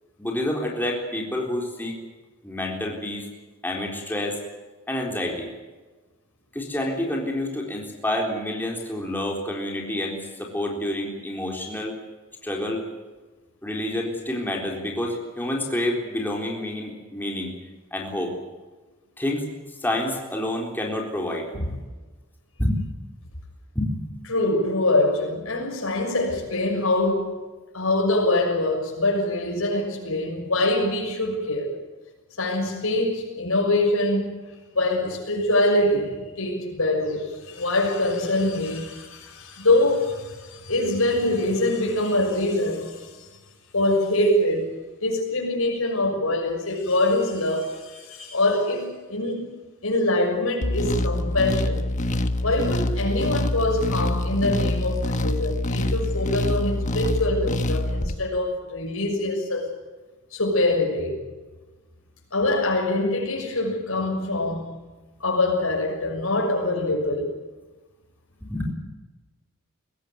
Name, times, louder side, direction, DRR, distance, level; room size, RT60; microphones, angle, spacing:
voice 1, 0.2-2.0 2.4-3.3 3.6-4.4 4.9-5.5 6.5-11.9 12.4-12.8 13.6-17.5 17.9-18.3 19.2-19.5 19.8-21.5 22.6-22.8 23.8-23.9 68.4-68.7, left 1 dB, 10° left, 3.9 m, -28 dB
voice 2, 24.3-27.4 27.7-31.7 32.4-43.1 43.7-44.7 45.0-49.5 49.8-51.9 52.4-59.7 60.3-61.2 62.3-64.7 65.2-67.3, left 2 dB, 85° left, 6.5 m, -24 dB
sound 1, 50.6-58.1, left 1 dB, 35° left, 1.3 m, -25 dB
22.5 x 16.5 x 9.4 m
head